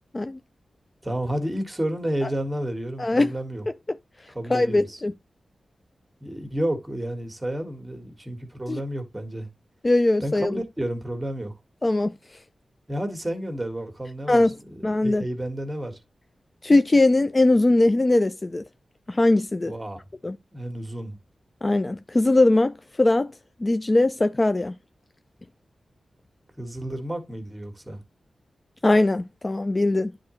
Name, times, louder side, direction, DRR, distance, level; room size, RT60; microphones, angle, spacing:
voice 1, 1.0-3.7 4.3-5.0 6.2-9.5 10.2-11.5 12.9-16.0 19.6-20.0 20.5-21.2 26.6-28.0, right 1 dB, 15° right, 1.8 m, -31 dB
voice 2, 3.0-3.3 3.7-4.0 4.5-5.1 8.7-8.8 9.8-10.6 11.8-12.1 14.3-14.6 14.8-15.2 16.6-18.6 19.1-19.7 20.2-20.4 21.6-23.3 23.6-24.8 28.8-30.1, left 2 dB, 30° left, 0.4 m, -21 dB
9.6 x 3.8 x 3.2 m
cardioid pair, 70°, 0 cm